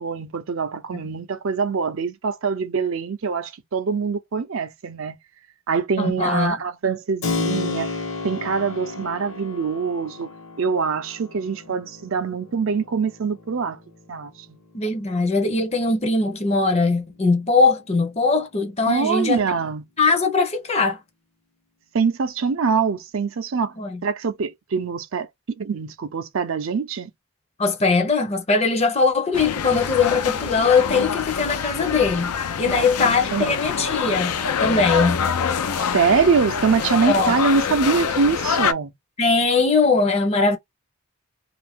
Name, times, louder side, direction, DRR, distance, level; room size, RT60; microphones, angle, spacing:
voice 1, 0.0-5.2 5.7-7.9 8.2-10.3 10.6-13.8 14.1-14.6 18.9-19.8 21.9-23.7 24.0-25.3 25.6-27.1 32.7-33.6 35.8-38.9, right 5 dB, 60° right, 0.5 m, -24 dB
voice 2, 6.0-6.6 14.7-19.4 20.0-21.0 23.8-24.0 27.6-32.3 32.6-35.2 37.1-37.3 39.2-40.6, left 4 dB, 30° left, 0.6 m, -20 dB
Keyboard (musical), 7.2-15.8, left 4 dB, 65° left, 1.0 m, -33 dB
sound 1, 29.3-38.7, left 6 dB, 85° left, 0.5 m, -25 dB
2.6 x 2.5 x 3.4 m
head